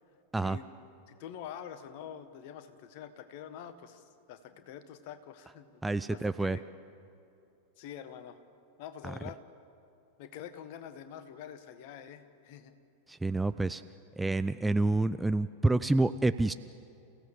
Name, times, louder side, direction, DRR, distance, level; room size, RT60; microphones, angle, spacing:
voice 1, 1.1-6.7 7.8-8.4 8.8-9.4 10.2-12.7, left 9 dB, 45° left, 10 dB, 1.5 m, -46 dB
voice 2, 5.8-6.6 9.0-9.1 13.1-13.8 14.2-16.5, right 2 dB, 5° right, 12 dB, 0.4 m, -28 dB
29.5 x 16.5 x 6.9 m, 2.7 s
figure-of-eight pair, 90°, 0 cm